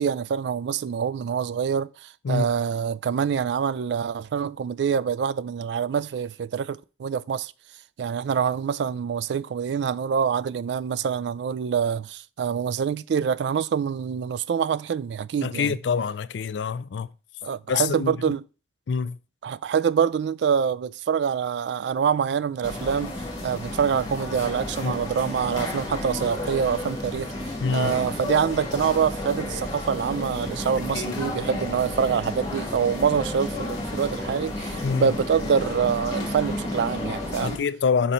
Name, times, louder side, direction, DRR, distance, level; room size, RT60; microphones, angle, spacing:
voice 1, 0.0-7.5 8.0-15.8 17.4-18.4 19.4-23.2 23.4-37.6, right 7 dB, 70° right, 0.3 m, -25 dB
voice 2, 15.4-17.1 17.7-18.1 18.9-19.2 24.8-25.0 27.6-27.9 30.9-31.2 34.8-35.1 37.4-38.1, left 5 dB, 75° left, 0.4 m, -26 dB
sound 1, 22.6-37.6, left 1 dB, 20° left, 1.9 m, -32 dB
5.8 x 4.3 x 3.8 m
head